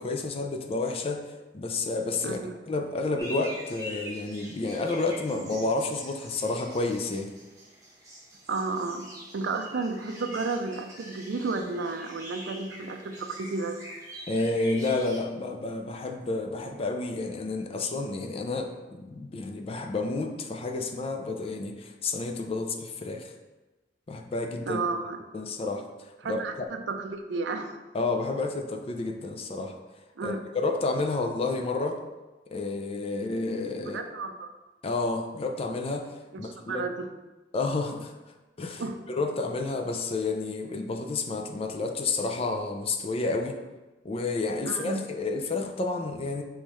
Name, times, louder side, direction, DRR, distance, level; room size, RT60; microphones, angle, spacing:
voice 1, 0.0-2.4 2.7-7.3 14.3-23.3 24.1-24.8 25.3-26.7 27.9-29.8 30.2-32.0 32.5-34.0 34.8-36.9 37.5-38.1 38.6-43.6 44.0-46.4, left 3 dB, 35° left, 4 dB, 0.4 m, -30 dB
voice 2, 2.2-2.5 8.5-9.1 9.3-13.8 24.7-25.2 26.2-27.8 30.2-30.4 33.8-34.5 36.3-37.1 38.8-39.0 44.6-45.0, right 3 dB, 75° right, 6 dB, 0.4 m, -32 dB
sound 1, 3.2-15.2, equal, 20° right, 1.0 m, -44 dB
5.4 x 3.1 x 3.1 m, 1.1 s
head